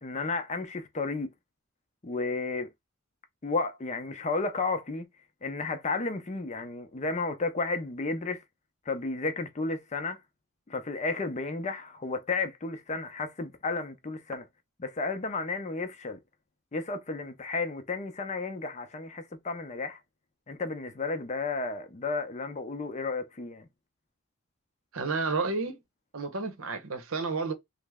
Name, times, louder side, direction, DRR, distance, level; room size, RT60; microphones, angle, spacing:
voice 1, 0.0-1.3 2.0-2.7 3.4-5.1 5.4-8.4 8.9-10.2 10.7-14.4 14.8-16.2 16.7-20.0 20.5-23.7, left 3 dB, 35° left, 0.5 m, -32 dB
voice 2, 24.9-25.8 26.1-27.5, right 4 dB, 85° right, 0.8 m, -31 dB
3.2 x 2.0 x 3.4 m
head